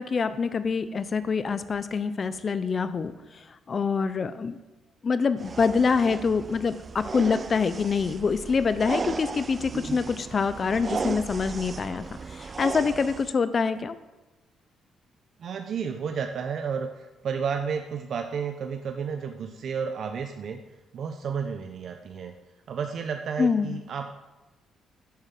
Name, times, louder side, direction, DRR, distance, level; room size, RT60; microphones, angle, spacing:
voice 1, 0.0-4.6 5.0-12.0 12.3-14.0 23.4-23.8, left 5 dB, 40° left, 13 dB, 0.6 m, -26 dB
sound 1, 5.4-13.3, right 5 dB, 35° right, 0.4 m, -36 dB
voice 2, 15.4-20.6 20.9-22.3 22.7-24.1, right 6 dB, 60° right, 6 dB, 0.8 m, -32 dB
10.5 x 7.4 x 7.5 m, 1.1 s
cardioid pair, 90°, 0 cm